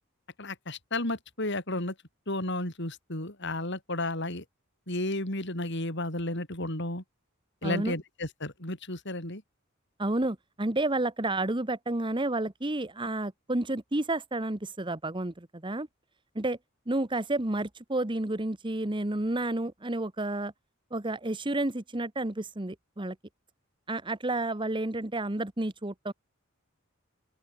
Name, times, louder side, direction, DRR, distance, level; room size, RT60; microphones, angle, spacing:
voice 1, 0.4-1.9 2.3-4.4 4.9-7.0 7.6-9.4, left 2 dB, 55° left, 6.4 m, -32 dB
voice 2, 7.6-8.0 10.0-15.9 16.3-16.6 16.9-20.5 20.9-23.2 23.9-26.1, right 2 dB, 25° right, 1.2 m, -30 dB
open air
head